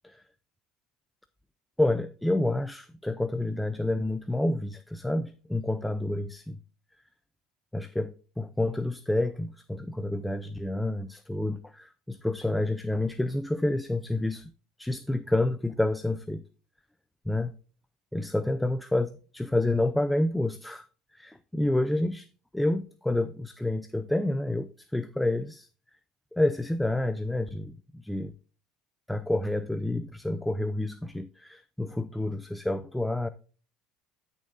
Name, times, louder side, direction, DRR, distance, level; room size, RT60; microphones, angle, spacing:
voice 1, 1.8-6.6 7.7-14.5 14.8-16.4 17.3-17.5 18.1-20.9 21.1-22.3 22.5-25.7 26.3-28.3 29.1-33.3, left 1 dB, 5° left, 0.5 m, -29 dB
12.5 x 6.5 x 2.6 m
cardioid pair, 140°, 0 cm